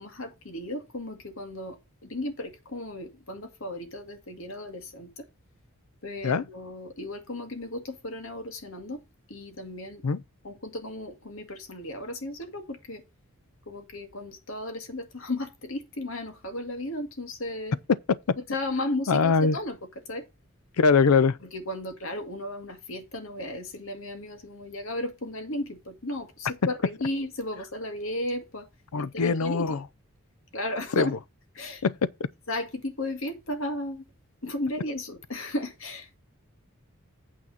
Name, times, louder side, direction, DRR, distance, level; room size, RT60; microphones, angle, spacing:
voice 1, 0.0-5.3 6.0-9.0 9.3-10.0 10.4-13.0 13.7-17.8 18.4-19.8 20.1-20.3 21.4-28.7 29.0-29.8 30.5-31.1 31.5-31.9 32.5-34.1 34.4-36.1, left 1 dB, 65° left, 2.1 m, -35 dB
voice 2, 19.1-19.6 20.8-21.4 28.9-29.8 31.0-31.1 31.8-31.9, left 5 dB, 85° left, 0.5 m, -22 dB
8.9 x 4.0 x 7.0 m
head